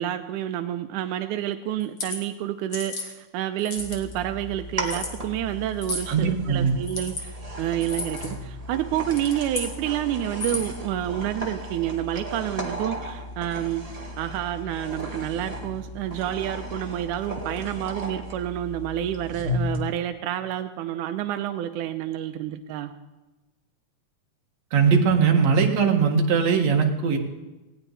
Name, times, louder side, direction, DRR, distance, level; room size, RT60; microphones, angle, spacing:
voice 1, 0.0-22.9, right 11 dB, 90° right, 8 dB, 2.2 m, -29 dB
sound 1, 1.8-2.2 2.7-3.1 3.6-4.1 4.8-5.1 5.8-6.1 6.8-7.2 7.8-8.3 9.0-9.7 10.3-10.8, left 2 dB, 40° left, 2.9 m, -33 dB
sound 2, 3.8-19.8, equal, 15° right, 1.5 m, -35 dB
voice 2, 6.1-6.8 24.7-27.2, right 6 dB, 60° right, 2 dB, 2.9 m, -20 dB
19.0 x 17.5 x 4.1 m, 1.1 s
omnidirectional pair, 3.5 m